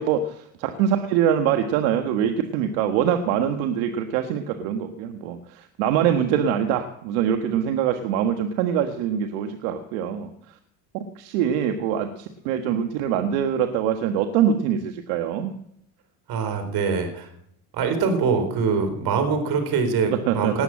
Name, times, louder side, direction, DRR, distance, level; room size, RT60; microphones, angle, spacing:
voice 1, 0.0-10.6 11.1-15.5 20.1-20.6, right 9 dB, 80° right, 6 dB, 1.6 m, -24 dB
voice 2, 16.3-17.3 17.7-20.6, right 5 dB, 60° right, 7 dB, 4.3 m, -23 dB
19.0 x 8.2 x 7.7 m, 0.73 s
supercardioid pair, 85°, 42 cm